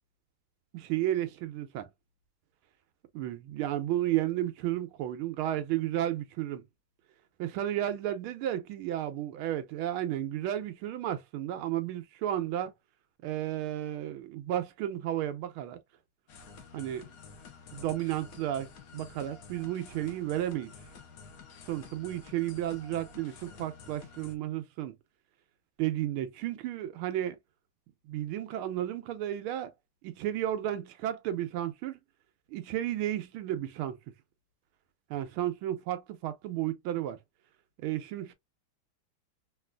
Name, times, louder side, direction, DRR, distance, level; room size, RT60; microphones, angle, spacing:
voice 1, 0.7-1.9 3.1-6.7 7.4-12.7 13.2-15.8 16.7-17.1 17.7-20.7 21.7-25.0 25.8-27.4 28.1-29.7 30.0-32.0 32.5-34.0 35.1-37.2 37.8-38.3, right 12 dB, 80° right, 1.5 m, -33 dB
sound 1, 16.3-24.4, left 5 dB, 70° left, 0.8 m, -50 dB
3.9 x 2.5 x 2.2 m
omnidirectional pair, 2.4 m